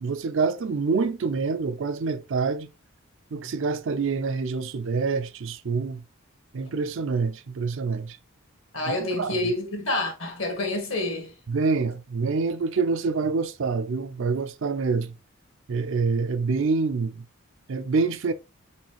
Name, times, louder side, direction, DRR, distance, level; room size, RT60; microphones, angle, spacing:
voice 1, 0.0-2.7 3.3-6.0 6.5-8.2 8.9-9.4 11.5-15.1 15.7-17.2 17.7-18.3, right 4 dB, 60° right, 0.4 m, -26 dB
voice 2, 8.7-11.3, left 2 dB, 60° left, 1.5 m, -28 dB
4.2 x 4.2 x 2.9 m
head